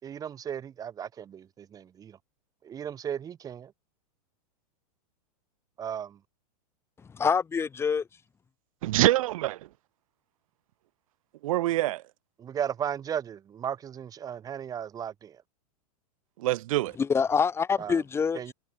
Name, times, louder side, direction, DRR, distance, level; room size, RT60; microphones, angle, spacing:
voice 1, 0.0-2.2 2.6-3.7 5.8-6.2 12.4-15.4 17.8-18.0 18.3-18.5, right 9 dB, 20° right, 3.2 m, -35 dB
voice 2, 7.1-8.0 17.0-18.5, left 6 dB, 10° left, 4.3 m, -26 dB
voice 3, 8.8-9.7 11.4-12.0 16.4-17.0, right 16 dB, 60° right, 3.2 m, -25 dB
supercardioid pair, 155°, 20 cm